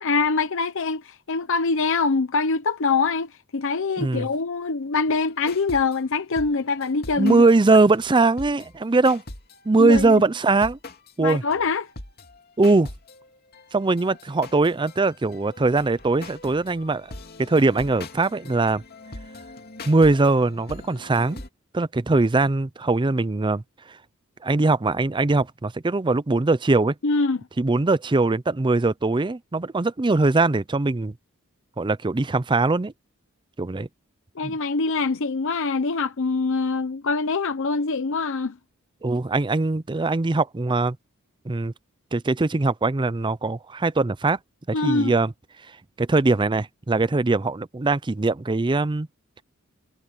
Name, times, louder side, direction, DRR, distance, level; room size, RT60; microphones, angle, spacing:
voice 1, 0.0-7.5 9.8-10.1 11.2-11.9 27.0-27.4 34.4-38.5 44.7-45.1, left 4 dB, 60° left, 0.8 m, -24 dB
voice 2, 4.0-4.3 7.2-9.2 9.7-10.8 11.2-11.4 12.6-12.9 13.7-17.1 17.4-18.8 19.9-21.4 21.7-23.6 24.4-26.9 27.6-31.1 31.8-32.9 33.6-33.9 34.4-34.5 39.0-41.0 41.5-41.7 42.1-44.4 44.8-45.3 46.0-49.1, right 3 dB, 20° right, 0.5 m, -21 dB
sound 1, 5.5-6.0 6.4-8.8 9.0-9.7 9.9-10.1 10.4-21.5, left 2 dB, 45° left, 2.6 m, -42 dB
head